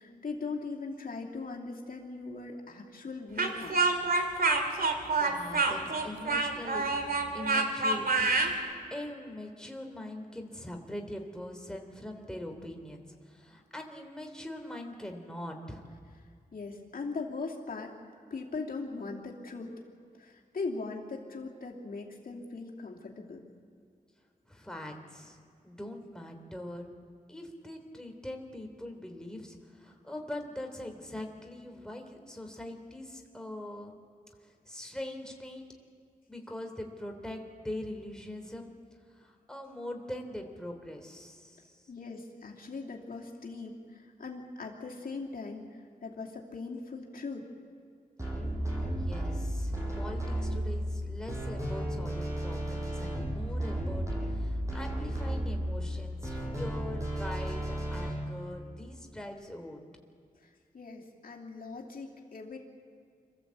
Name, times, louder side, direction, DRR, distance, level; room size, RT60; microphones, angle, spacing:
voice 1, 0.0-3.8 16.5-17.9 18.3-19.7 20.2-23.4 41.9-47.5 60.4-62.6, left 4 dB, 70° left, -1 dB, 2.7 m, -40 dB
Speech, 3.4-8.5, right 3 dB, 75° right, 2.2 m, -27 dB
voice 2, 5.0-7.0 7.3-15.8 24.5-25.4 25.6-26.8 27.3-33.9 34.4-35.6 36.3-38.7 39.1-41.8 48.9-59.8, left 1 dB, 5° left, 3 dB, 3.1 m, -42 dB
sound 1, 48.2-58.1, right 1 dB, 20° right, 7.9 m, -33 dB
26.0 x 14.5 x 8.2 m, 2.2 s
cardioid pair, 60°, 15 cm